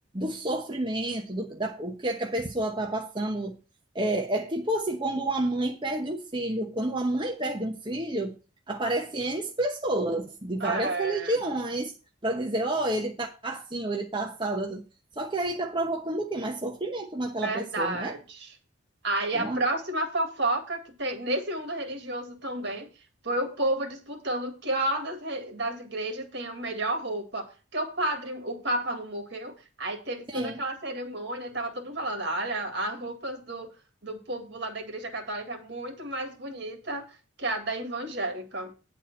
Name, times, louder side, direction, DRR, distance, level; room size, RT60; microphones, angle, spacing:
voice 1, 0.1-3.6 3.9-8.4 8.7-11.9 12.2-14.8 15.2-18.1 19.3-19.6 30.3-30.6, right 1 dB, 25° right, 1.0 m, -30 dB
voice 2, 10.6-11.4 17.4-18.5 19.0-22.9 23.2-33.7 34.0-37.1 37.4-38.8, right 1 dB, 55° right, 2.1 m, -31 dB
9.9 x 4.4 x 7.6 m
head